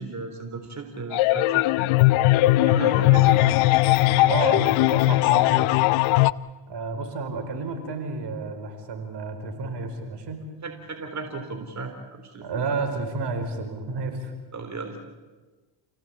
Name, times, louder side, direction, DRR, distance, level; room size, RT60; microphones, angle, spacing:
voice 1, 0.0-1.6 2.6-4.7 10.6-12.7 14.5-15.0, right 3 dB, 35° right, 5 dB, 3.8 m, -35 dB
sound 1, 1.1-6.3, left 18 dB, 85° left, 0.7 m, -19 dB
voice 2, 4.3-5.8 6.7-10.4 12.4-14.3, right 4 dB, 55° right, 7 dB, 4.8 m, -31 dB
29.0 x 17.0 x 8.7 m, 1.3 s
supercardioid pair, 75°, 48 cm